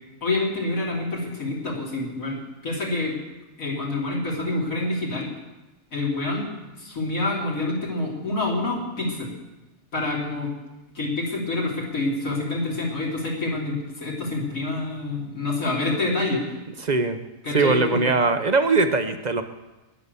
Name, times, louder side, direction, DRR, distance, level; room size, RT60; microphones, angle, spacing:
voice 1, 0.2-3.2 3.6-5.3 5.9-6.5 6.8-9.3 9.9-10.5 10.9-16.4 17.4-18.0, left 2 dB, 80° left, -4 dB, 3.6 m, -27 dB
voice 2, 16.8-17.2 17.5-19.4, right 3 dB, 40° right, 8 dB, 0.7 m, -21 dB
20.0 x 6.9 x 6.8 m, 1.1 s
omnidirectional pair, 1.4 m